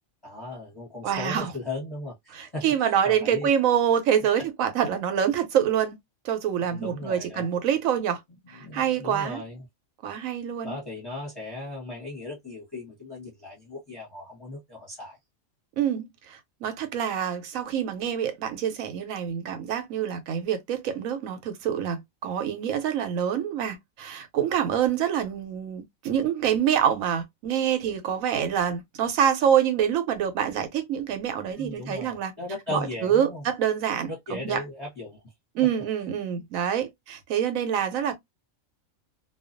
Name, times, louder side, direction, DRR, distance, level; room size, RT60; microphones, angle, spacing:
voice 1, 0.2-3.5 4.4-4.5 6.7-7.4 8.5-9.6 10.6-15.2 31.6-33.4 34.1-35.2, left 2 dB, 20° left, 0.8 m, -37 dB
voice 2, 1.0-1.5 2.3-6.0 6.2-8.2 8.5-9.4 10.0-10.8 15.8-32.3 32.7-34.6 35.5-38.1, right 9 dB, 85° right, 1.0 m, -26 dB
2.4 x 2.2 x 2.4 m
omnidirectional pair, 1.4 m